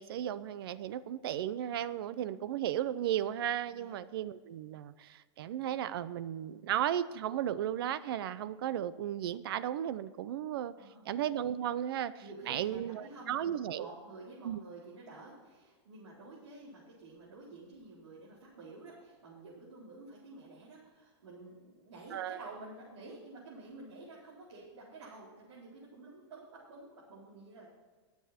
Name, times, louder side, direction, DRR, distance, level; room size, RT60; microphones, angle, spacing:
voice 1, 0.0-10.7 11.0-12.1 12.5-13.9 14.4-14.6 22.1-22.4, right 11 dB, 55° right, 16 dB, 0.6 m, -35 dB
voice 2, 2.1-2.5 3.7-4.0 10.7-11.0 12.2-27.8, right 2 dB, 85° right, -7 dB, 4.3 m, -50 dB
21.0 x 7.2 x 4.3 m, 1.4 s
supercardioid pair, 170°, 15 cm